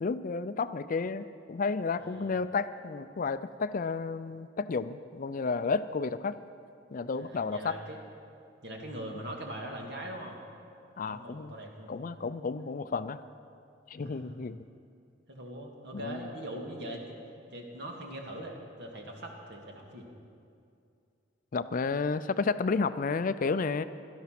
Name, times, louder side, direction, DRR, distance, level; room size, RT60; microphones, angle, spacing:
voice 1, 0.0-6.4 6.9-7.7 11.0-11.5 11.9-13.2 13.9-14.6 15.9-16.3 21.5-23.8, left 4 dB, 45° left, 13 dB, 0.4 m, -31 dB
voice 2, 2.0-2.3 7.1-8.0 8.6-10.4 11.1-11.9 14.0-14.3 15.3-17.2 17.5-20.1, right 1 dB, 60° right, 1 dB, 2.2 m, -41 dB
17.0 x 12.5 x 6.0 m, 2.4 s
head